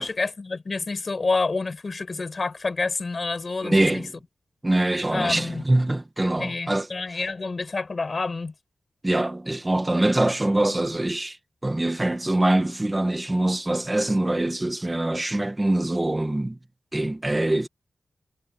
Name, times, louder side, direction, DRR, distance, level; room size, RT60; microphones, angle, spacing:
voice 1, 0.0-4.0 5.1-5.6 6.4-8.5, left 3 dB, 35° left, 5.5 m, -28 dB
voice 2, 3.6-4.1 4.6-6.9 9.0-11.4 11.6-16.6 16.9-17.7, right 1 dB, 15° right, 2.1 m, -23 dB
wide cardioid pair, 160°, 0 cm